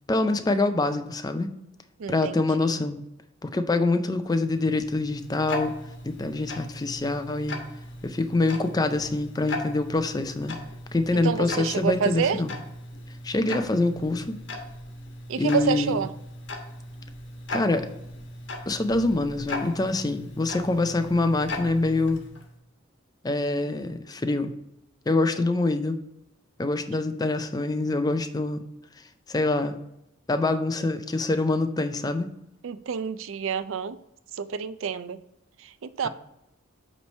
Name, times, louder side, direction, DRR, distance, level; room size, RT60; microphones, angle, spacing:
voice 1, 0.1-1.5 2.1-3.0 3.4-5.7 6.0-7.6 8.0-10.6 10.9-12.5 13.2-14.4 15.4-16.0 17.5-17.9 18.7-22.2 23.2-24.5 25.1-26.0 26.6-28.6 29.3-29.9 30.3-32.3, left 2 dB, 20° left, 0.4 m, -25 dB
voice 2, 2.0-2.7 11.1-12.4 15.3-16.1 32.6-34.0 34.3-35.2 35.6-36.1, right 6 dB, 80° right, 0.4 m, -28 dB
Tick-tock, 4.2-22.5, left 1 dB, 60° left, 1.2 m, -38 dB
8.3 x 3.2 x 5.3 m
head